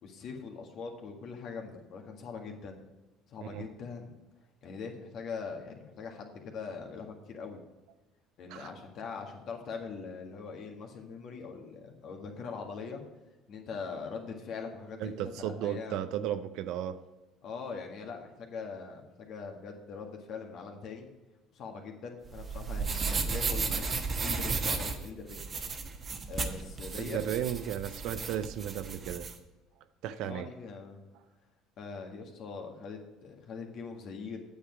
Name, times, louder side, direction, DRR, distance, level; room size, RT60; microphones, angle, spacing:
voice 1, 0.0-2.8 3.3-4.2 4.6-7.6 8.4-13.0 13.5-16.0 17.4-21.1 21.5-25.5 26.3-27.2 30.2-31.0 31.8-34.4, left 5 dB, 55° left, 2 dB, 1.8 m, -42 dB
voice 2, 15.0-17.0 26.9-29.3 30.0-30.5, right 10 dB, 65° right, 11 dB, 0.6 m, -34 dB
sound 1, 22.3-29.3, right 4 dB, 40° right, 1.2 m, -34 dB
8.8 x 7.4 x 4.6 m, 1.1 s
hypercardioid pair, 65°, 0 cm